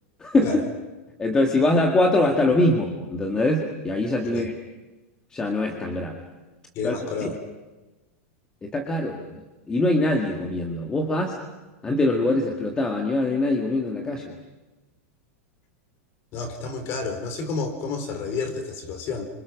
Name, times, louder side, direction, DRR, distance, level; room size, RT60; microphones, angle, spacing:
voice 1, 0.2-0.6 1.2-4.5 5.3-6.2 6.8-6.9 7.2-7.3 8.6-9.4 9.7-11.4 11.8-14.3, left 2 dB, 10° left, 2 dB, 1.9 m, -23 dB
voice 2, 6.8-7.4 16.3-19.3, left 4 dB, 30° left, 7 dB, 4.2 m, -30 dB
30.0 x 26.0 x 6.4 m, 1.2 s
supercardioid pair, 165°, 8 cm